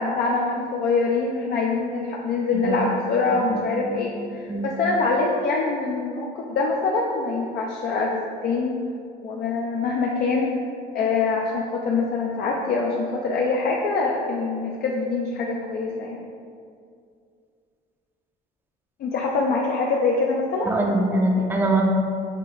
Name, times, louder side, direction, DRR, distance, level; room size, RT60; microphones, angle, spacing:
voice 1, 0.0-8.8 9.2-10.5 10.9-16.2 19.0-20.7, left 3 dB, 65° left, -2 dB, 0.5 m, -24 dB
voice 2, 3.5-4.0 4.5-4.7 20.6-21.8, right 2 dB, 10° right, 0 dB, 0.4 m, -23 dB
5.7 x 2.5 x 3.3 m, 2.3 s
cardioid pair, 110°, 17 cm